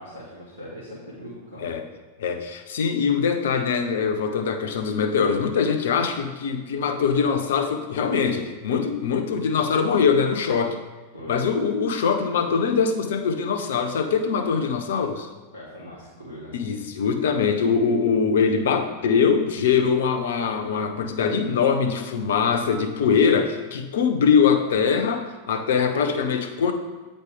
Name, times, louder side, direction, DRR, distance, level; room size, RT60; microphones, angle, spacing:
voice 1, 0.0-1.7 11.1-11.4 15.5-16.5 25.8-26.2, equal, 85° right, -10 dB, 1.8 m, -40 dB
voice 2, 2.2-10.8 11.3-15.3 16.5-26.7, left 6 dB, 60° left, 7 dB, 0.7 m, -22 dB
8.1 x 5.1 x 3.6 m, 1.2 s
figure-of-eight pair, 90°, 0 cm